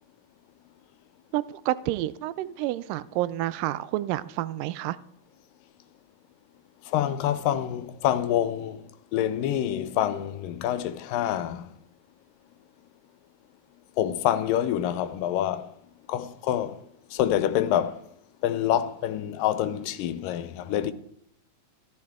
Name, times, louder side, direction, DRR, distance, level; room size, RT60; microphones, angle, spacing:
voice 1, 1.3-5.0, right 15 dB, 90° right, 2.2 m, -29 dB
voice 2, 6.9-8.8 9.1-11.7 14.0-15.7 16.1-16.8 17.1-18.0 18.4-20.9, left 11 dB, 85° left, 2.4 m, -26 dB
14.5 x 12.5 x 3.6 m
omnidirectional pair, 3.8 m